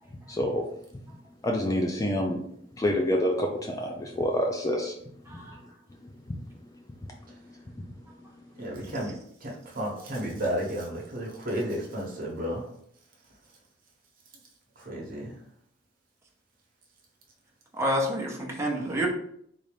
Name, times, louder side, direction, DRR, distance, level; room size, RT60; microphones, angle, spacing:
voice 1, 0.3-0.6 1.4-2.4 2.8-5.0 5.3-5.4, left 1 dB, 20° left, 1 dB, 0.4 m, -27 dB
voice 2, 5.3-5.6 17.8-19.1, equal, 15° right, -2 dB, 0.7 m, -28 dB
voice 3, 8.6-9.2 9.4-12.6 14.8-15.3, equal, 45° right, -2 dB, 1.0 m, -32 dB
3.9 x 2.5 x 3.3 m, 0.68 s
head